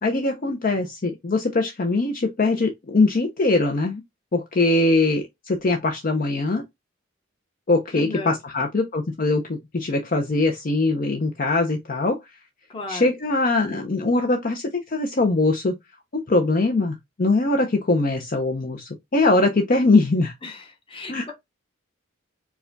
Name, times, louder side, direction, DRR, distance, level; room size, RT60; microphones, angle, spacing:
voice 1, 0.0-4.0 4.3-6.6 7.7-12.2 12.9-15.8 16.3-20.3 21.1-21.2, left 2 dB, 40° left, 0.6 m, -22 dB
voice 2, 7.9-8.4 12.7-13.1 20.4-20.6 20.9-21.3, left 3 dB, 25° left, 0.9 m, -34 dB
4.7 x 2.2 x 3.8 m
head